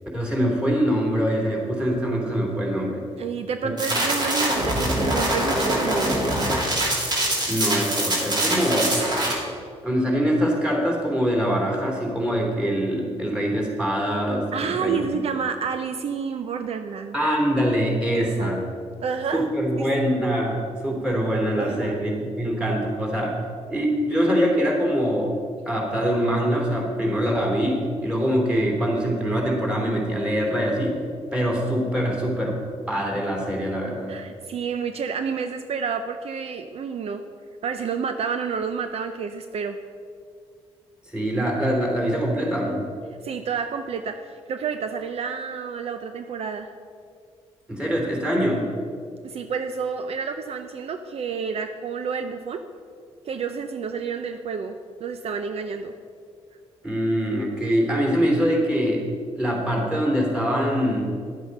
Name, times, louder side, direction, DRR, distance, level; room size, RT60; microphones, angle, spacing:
voice 1, 0.1-3.0 3.6-3.7 7.5-9.0 9.8-15.1 17.1-18.6 19.3-23.4 23.7-25.3 25.7-31.0 31.3-32.6 32.9-34.1 41.1-42.9 47.7-48.7 56.8-59.1 59.4-61.2, equal, 5° right, -1 dB, 3.2 m, -24 dB
voice 2, 3.2-6.5 14.5-17.2 18.1-18.5 19.0-19.5 19.8-19.9 21.6-22.0 34.1-37.2 37.6-39.8 43.2-44.2 44.5-46.7 49.2-52.6 53.2-54.7 55.0-55.9, right 6 dB, 60° right, 8 dB, 0.6 m, -29 dB
sound 1, 3.8-9.3, right 1 dB, 40° right, 2.8 m, -23 dB
11.0 x 8.0 x 5.4 m, 2.2 s
cardioid pair, 85°, 12 cm